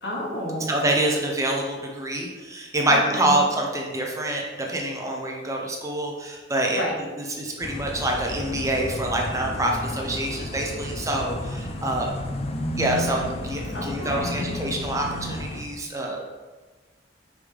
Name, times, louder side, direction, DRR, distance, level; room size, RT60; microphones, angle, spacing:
voice 1, 0.0-0.7 2.9-3.4 6.7-6.9 13.7-14.6, left 1 dB, 65° left, -3 dB, 1.4 m, -30 dB
voice 2, 0.7-6.8 7.2-12.1 12.8-16.2, right 1 dB, 15° right, -1 dB, 0.9 m, -26 dB
sound 1, 7.6-15.6, left 1 dB, 35° left, 0.5 m, -32 dB
5.7 x 5.0 x 3.4 m, 1.3 s
head